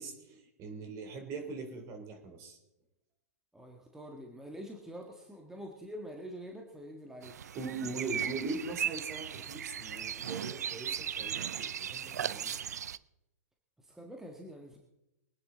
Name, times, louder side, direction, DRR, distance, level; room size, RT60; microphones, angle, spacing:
voice 1, 0.0-2.6 7.5-12.6, right 3 dB, 35° right, 4 dB, 3.3 m, -41 dB
voice 2, 3.5-7.3 13.8-14.8, equal, 5° right, 1 dB, 1.6 m, -46 dB
sound 1, 7.2-13.0, right 9 dB, 75° right, 0.5 m, -37 dB
23.0 x 9.7 x 3.9 m, 0.91 s
hypercardioid pair, 115°, 9 cm